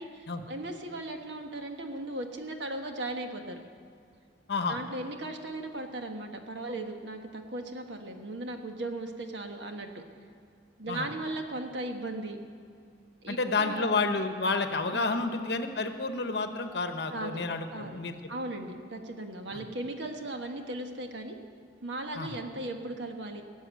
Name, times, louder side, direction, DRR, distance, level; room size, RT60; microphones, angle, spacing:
voice 1, 0.0-3.6 4.7-10.0 10.8-12.4 13.2-13.9 14.9-15.3 17.1-17.4 17.7-18.0 18.3-21.4 21.8-23.4, right 2 dB, 75° right, 4 dB, 1.3 m, -37 dB
voice 2, 13.3-18.3 19.5-19.6 22.2-22.3, left 3 dB, 60° left, 7 dB, 1.0 m, -30 dB
18.0 x 7.2 x 9.3 m, 2.3 s
head